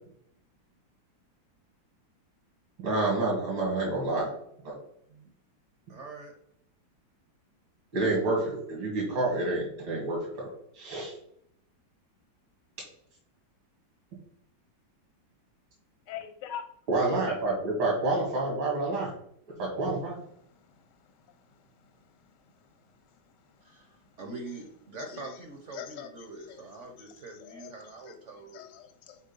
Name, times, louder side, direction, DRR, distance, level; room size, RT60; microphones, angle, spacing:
voice 1, 2.8-4.3 4.6-4.8 7.9-11.1 16.9-19.1 19.5-20.2, right 2 dB, 85° right, -3 dB, 2.6 m, -28 dB
voice 2, 5.9-6.3 23.6-28.6, right 3 dB, 50° right, 3 dB, 0.9 m, -44 dB
voice 3, 16.1-16.6 25.0-25.3 25.7-26.1 26.5-26.6 27.1-27.7 28.0-28.1 28.5-29.2, left 9 dB, 65° left, 8 dB, 1.4 m, -42 dB
5.4 x 4.3 x 5.3 m, 0.71 s
omnidirectional pair, 2.1 m